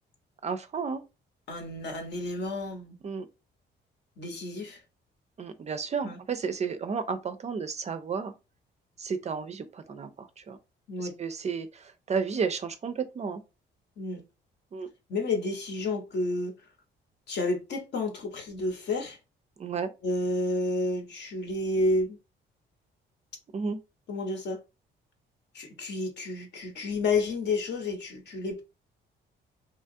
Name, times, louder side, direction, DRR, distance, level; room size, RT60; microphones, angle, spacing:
voice 1, 0.4-1.0 3.0-3.3 5.4-8.3 9.0-10.6 11.0-13.4 14.7-14.9 19.6-19.9 23.5-23.8, right 5 dB, 35° right, 0.4 m, -32 dB
voice 2, 1.5-3.0 4.2-4.8 6.0-6.2 10.9-11.1 14.0-14.2 15.1-16.5 17.3-19.2 20.0-22.2 24.1-24.6 25.5-28.6, left 2 dB, 60° left, 0.8 m, -30 dB
2.9 x 2.3 x 2.6 m
cardioid pair, 90°, 20 cm